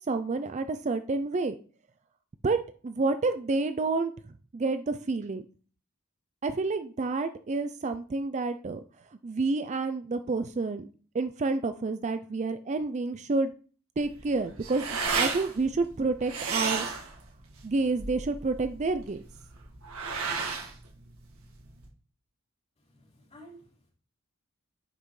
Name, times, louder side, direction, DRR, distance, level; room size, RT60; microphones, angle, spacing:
voice 1, 0.1-1.5 2.4-2.6 2.8-4.1 4.5-5.4 6.4-8.8 9.2-10.9 11.1-13.5 14.0-14.8 15.1-16.9 17.6-19.2, right 3 dB, 30° right, 0.4 m, -29 dB
sound 1, 14.0-21.9, right 5 dB, 80° right, 1.8 m, -34 dB
voice 2, 22.8-23.9, equal, 30° left, 4.1 m, -53 dB
9.7 x 5.5 x 3.2 m
head